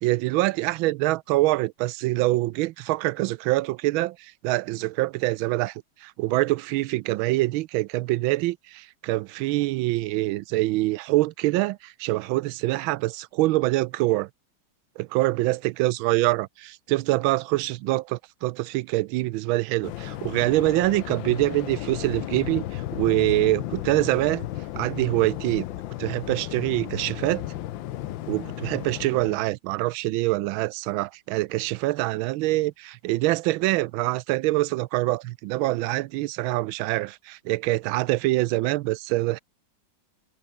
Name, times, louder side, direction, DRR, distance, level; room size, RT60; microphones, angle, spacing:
voice 1, 0.0-14.3 15.0-24.5 24.7-25.6 26.0-27.4 28.3-39.4, right 18 dB, 90° right, 1.4 m, -25 dB
Waves surf, 19.8-29.5, left 14 dB, 75° left, 1.5 m, -34 dB
open air
omnidirectional pair, 2.1 m